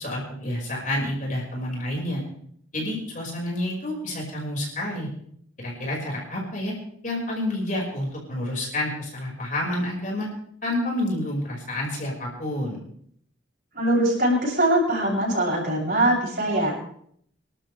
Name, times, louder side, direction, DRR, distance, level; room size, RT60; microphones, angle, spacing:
voice 1, 0.0-2.2 2.7-5.1 5.6-6.7 7.0-10.3 10.6-12.8, left 1 dB, 40° left, -2 dB, 5.6 m, -29 dB
voice 2, 13.7-16.7, right 1 dB, 50° right, -4 dB, 8.0 m, -22 dB
27.0 x 12.5 x 3.5 m, 0.65 s
head